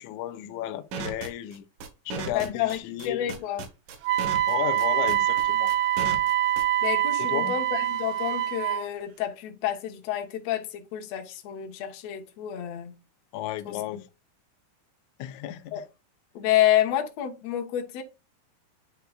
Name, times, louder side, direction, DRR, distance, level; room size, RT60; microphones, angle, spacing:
voice 1, 0.0-1.7 2.1-3.3 4.5-5.7 7.2-7.6 13.3-14.1 15.2-15.8, left 13 dB, 80° left, 1.8 m, -34 dB
sound 1, 0.9-6.9, right 5 dB, 70° right, 2.6 m, -35 dB
voice 2, 2.3-3.6 6.8-12.9 13.7-13.8 15.7-15.8 16.3-18.0, left 12 dB, 65° left, 2.0 m, -29 dB
Wind instrument woodwind instrument, 4.0-8.9, right 12 dB, 90° right, 2.5 m, -25 dB
9.3 x 4.6 x 2.3 m
omnidirectional pair, 4.0 m